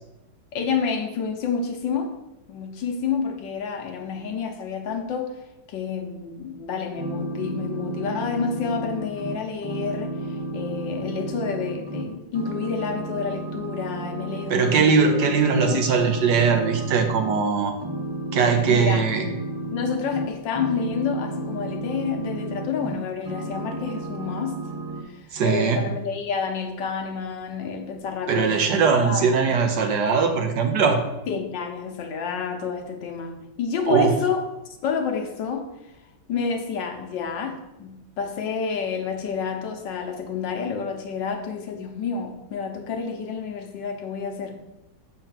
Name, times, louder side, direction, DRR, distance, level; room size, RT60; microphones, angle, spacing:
voice 1, 0.5-2.2 2.5-5.3 5.7-15.8 18.6-19.1 19.7-24.6 25.1-29.7 31.3-34.5 34.8-35.7 36.3-44.5, left 6 dB, 80° left, 4 dB, 1.7 m, -29 dB
sound 1, 7.0-12.1 12.3-14.8 15.0-17.4 17.8-23.0 23.2-25.0, right 2 dB, 25° right, 0.6 m, -32 dB
voice 2, 14.5-17.7 18.3-19.2 25.3-25.8 28.3-31.0 33.9-34.1, right 5 dB, 70° right, 4 dB, 1.5 m, -20 dB
7.4 x 4.5 x 5.8 m, 0.95 s
omnidirectional pair, 2.0 m